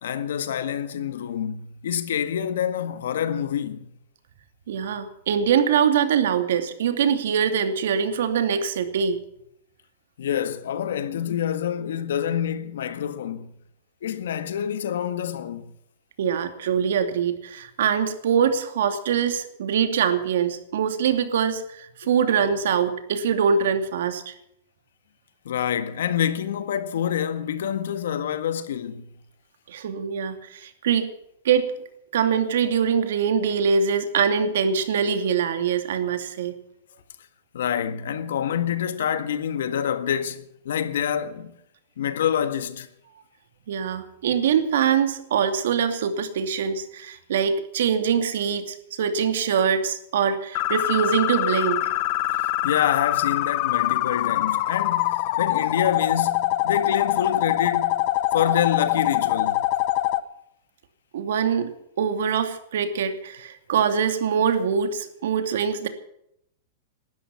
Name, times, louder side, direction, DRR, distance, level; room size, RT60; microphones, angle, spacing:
voice 1, 0.0-3.9 10.2-13.5 14.0-15.7 25.4-29.1 37.5-41.5 42.0-42.9 52.6-58.1 58.3-59.6, left 9 dB, 85° left, 1.7 m, -27 dB
voice 2, 4.7-9.2 16.2-24.3 29.7-31.1 31.4-31.7 32.1-36.5 43.7-51.8 61.1-61.7 62.0-65.9, right 7 dB, 75° right, 2.5 m, -23 dB
sound 1, 50.5-60.2, left 16 dB, 40° left, 0.9 m, -24 dB
19.0 x 12.5 x 5.9 m
supercardioid pair, 170°, 0 cm